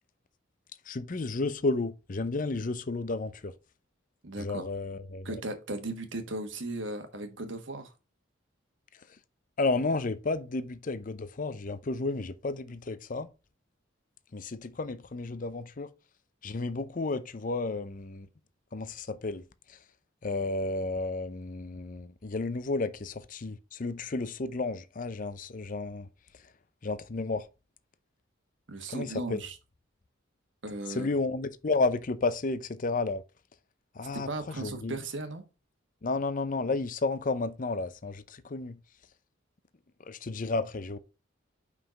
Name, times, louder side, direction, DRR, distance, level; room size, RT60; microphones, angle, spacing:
voice 1, 0.9-3.5 4.4-5.3 9.6-13.3 14.3-15.9 16.4-18.3 18.7-19.8 20.2-26.1 26.8-27.5 28.9-29.4 30.9-33.2 34.0-35.0 36.0-38.8 40.1-41.0, left 3 dB, 40° left, 0.5 m, -32 dB
voice 2, 4.2-4.7 5.2-7.9 28.7-29.6 30.6-31.1 34.1-35.4, right 2 dB, 65° right, 1.4 m, -37 dB
5.7 x 4.9 x 5.1 m
head